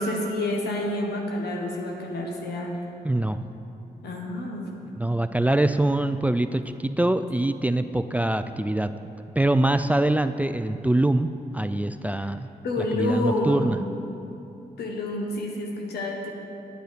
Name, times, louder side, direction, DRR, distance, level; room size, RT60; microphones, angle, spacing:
voice 1, 0.0-2.8 4.0-4.7 12.6-13.8 14.8-16.3, left 1 dB, 85° left, 0 dB, 1.3 m, -28 dB
voice 2, 3.0-3.4 5.0-8.9 9.4-11.3 11.5-12.5 12.8-13.8, right 1 dB, 10° right, 10 dB, 0.3 m, -24 dB
9.1 x 7.9 x 5.1 m, 2.8 s
cardioid pair, 55°, 17 cm